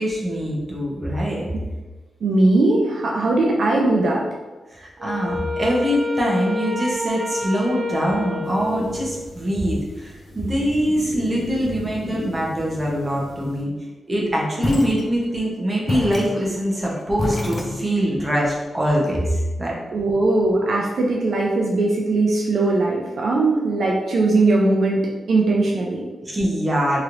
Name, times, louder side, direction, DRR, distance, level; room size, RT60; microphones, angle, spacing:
voice 1, 0.0-1.5 4.7-13.7 14.1-19.7 26.3-27.0, equal, 20° right, -4 dB, 0.7 m, -23 dB
voice 2, 2.2-4.2 19.9-26.1, right 2 dB, 65° right, -1 dB, 0.4 m, -19 dB
Wind instrument woodwind instrument, 5.0-9.4, left 3 dB, 40° right, 1.3 m, -28 dB
sound 1, 8.4-13.6, left 1 dB, 75° left, 0.9 m, -35 dB
sound 2, 14.6-15.5 15.9-18.2, left 2 dB, 30° left, 0.4 m, -28 dB
3.1 x 2.9 x 2.5 m, 1.2 s
wide cardioid pair, 130°, 0 cm